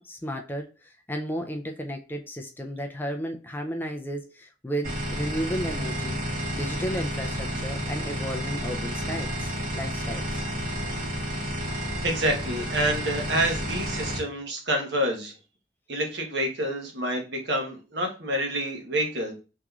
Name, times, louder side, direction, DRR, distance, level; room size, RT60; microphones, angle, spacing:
voice 1, 0.0-6.2 6.5-10.4, equal, 10° left, 3 dB, 0.3 m, -33 dB
sound 1, 4.8-14.2, equal, 50° right, 1.2 m, -31 dB
voice 2, 12.0-15.3 15.9-19.3, right 1 dB, 75° right, 2 dB, 1.1 m, -28 dB
3.6 x 3.0 x 2.3 m, 0.31 s
head